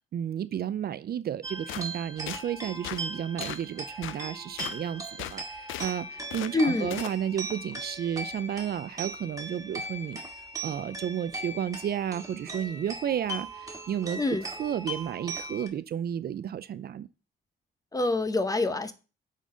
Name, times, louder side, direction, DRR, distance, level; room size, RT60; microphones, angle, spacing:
voice 1, 0.0-10.2 10.6-17.1, right 9 dB, 50° right, 0.5 m, -32 dB
sound 1, 1.4-15.7, right 2 dB, 15° right, 1.7 m, -39 dB
sound 2, 1.7-1.9 2.3-2.4 2.8-3.0 3.4-3.7 4.0-4.2 4.6-4.8 5.2-5.9 6.3-6.5 6.9-7.2, left 14 dB, 85° left, 0.4 m, -37 dB
voice 2, 6.5-7.0 14.2-14.4 17.9-18.9, left 2 dB, 20° left, 0.8 m, -26 dB
8.3 x 4.1 x 3.8 m
cardioid pair, 90°, 20 cm